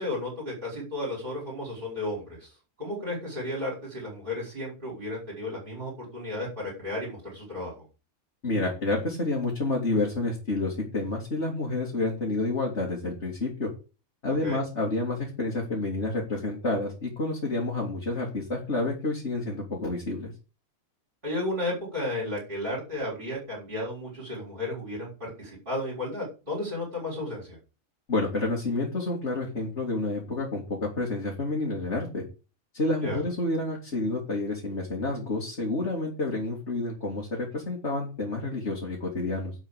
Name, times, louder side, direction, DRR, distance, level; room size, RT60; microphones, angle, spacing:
voice 1, 0.0-7.8 14.4-14.6 21.2-27.6 33.0-33.2, left 1 dB, 35° right, -4 dB, 6.0 m, -33 dB
voice 2, 8.4-13.7 14.2-20.3 28.1-32.2 32.7-39.5, left 2 dB, 50° left, -2 dB, 3.3 m, -29 dB
11.5 x 5.7 x 8.6 m, 0.33 s
omnidirectional pair, 1.5 m